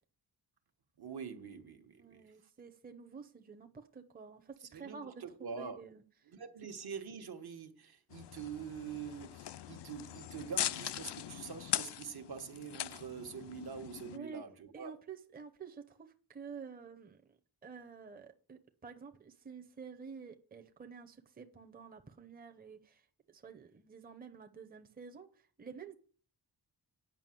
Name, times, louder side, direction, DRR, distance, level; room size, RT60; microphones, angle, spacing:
voice 1, 1.0-2.3 4.7-5.8 6.3-14.9, right 6 dB, 65° right, 1.2 m, -45 dB
voice 2, 2.0-6.3 14.1-14.5 14.7-25.9, right 5 dB, 20° right, 0.7 m, -50 dB
sound 1, 8.1-14.2, left 12 dB, 80° left, 0.5 m, -40 dB
9.1 x 5.8 x 7.5 m
wide cardioid pair, 140°, 41 cm